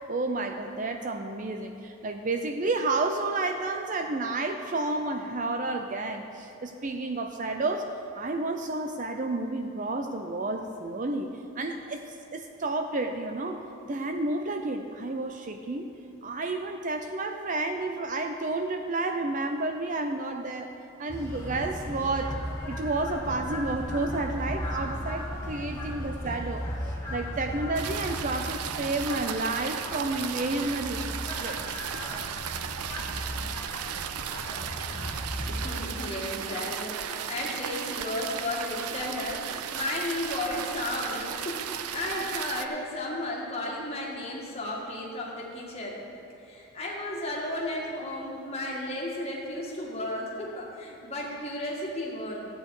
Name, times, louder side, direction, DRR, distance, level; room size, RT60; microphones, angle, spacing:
voice 1, 0.1-7.9 8.2-11.3 11.6-15.9 16.2-20.7 21.0-22.4 22.7-31.6, right 2 dB, 35° right, 5 dB, 0.5 m, -31 dB
sound 1, 21.1-35.8, equal, 10° left, 1.7 m, -36 dB
sound 2, 27.7-42.7, right 8 dB, 90° right, 0.5 m, -35 dB
voice 2, 35.5-46.0 46.4-52.5, left 1 dB, 25° left, -3 dB, 1.9 m, -34 dB
14.5 x 8.8 x 4.8 m, 2.8 s
head